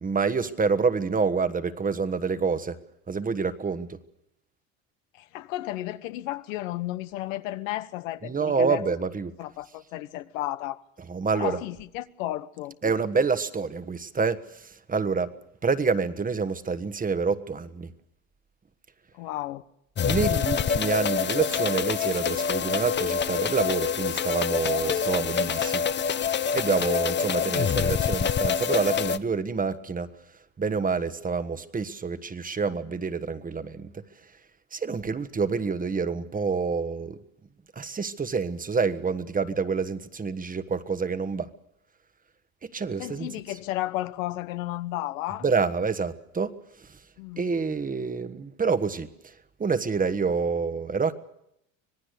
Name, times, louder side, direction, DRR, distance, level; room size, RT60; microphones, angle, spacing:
voice 1, 0.0-2.8 3.1-4.0 8.2-9.3 11.1-11.6 12.8-15.3 15.6-17.9 20.0-25.8 26.5-30.1 30.6-33.9 34.7-37.2 37.7-41.5 42.6-43.3 45.4-46.5 47.4-49.1 49.6-51.1, right 5 dB, 20° right, 1.3 m, -27 dB
voice 2, 5.2-8.8 9.4-10.8 11.3-12.7 19.1-19.6 43.0-45.5 47.2-47.4, left 15 dB, 80° left, 1.2 m, -33 dB
sound 1, 20.0-29.2, left 7 dB, 25° left, 0.9 m, -26 dB
26.0 x 18.5 x 6.7 m
supercardioid pair, 95°, 39 cm